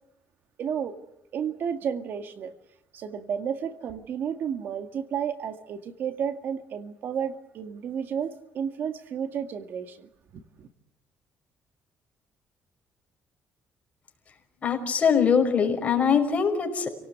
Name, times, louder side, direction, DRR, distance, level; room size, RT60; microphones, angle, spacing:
voice 1, 0.6-1.0 1.3-2.5 2.9-10.7, right 7 dB, 60° right, 2.1 m, -32 dB
voice 2, 14.6-16.9, left 6 dB, 35° left, 5.4 m, -22 dB
29.5 x 18.0 x 9.7 m
cardioid pair, 125°, 4 cm